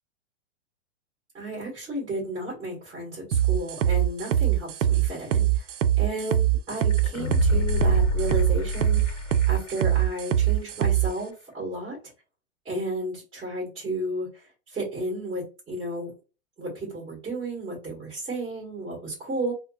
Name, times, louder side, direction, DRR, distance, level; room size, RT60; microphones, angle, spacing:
voice 1, 1.3-5.6 6.0-9.2 9.5-12.0 12.6-14.3 14.7-16.1 16.6-19.5, right 2 dB, 15° right, -5 dB, 1.5 m, -33 dB
sound 1, 3.3-11.1, right 12 dB, 85° right, 0.5 m, -22 dB
sound 2, 6.9-9.8 10.1-10.2, left 3 dB, 85° left, 0.8 m, -27 dB
4.5 x 2.0 x 2.3 m, 0.32 s
hypercardioid pair, 150°, 36 cm